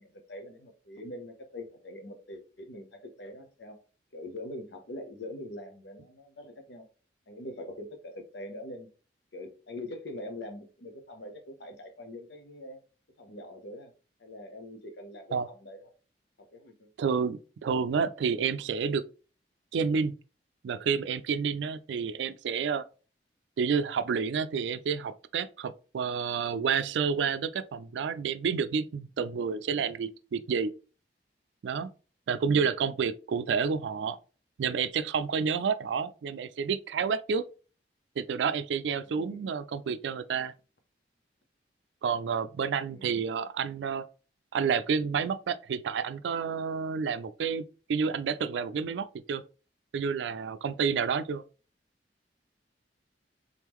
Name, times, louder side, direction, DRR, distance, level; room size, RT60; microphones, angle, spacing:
voice 1, 0.0-3.8 4.1-6.8 7.3-8.9 9.3-12.8 13.2-13.9 14.2-15.9 16.4-16.9 32.4-32.7 39.1-39.5 42.9-43.2, left 1 dB, 75° left, 0.9 m, -43 dB
voice 2, 17.0-19.1 19.7-20.1 20.6-22.8 23.6-30.7 31.6-31.9 32.3-34.2 34.6-37.4 38.2-40.5 42.0-44.1 44.5-47.6 47.9-49.4 49.9-51.4, right 6 dB, 80° right, 0.3 m, -29 dB
3.7 x 3.6 x 3.0 m
head